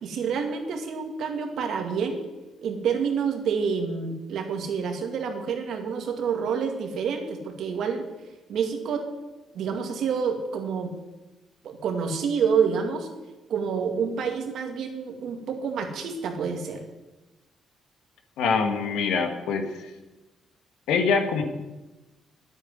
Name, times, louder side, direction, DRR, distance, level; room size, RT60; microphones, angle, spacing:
voice 1, 0.0-2.2 2.6-8.1 8.5-9.1 9.5-10.9 11.6-13.1 13.5-16.8, right 6 dB, 70° right, 4 dB, 2.2 m, -28 dB
voice 2, 18.4-19.6 20.9-21.4, left 5 dB, 85° left, 5 dB, 1.8 m, -24 dB
10.0 x 8.1 x 9.4 m, 1.1 s
cardioid pair, 90°, 0 cm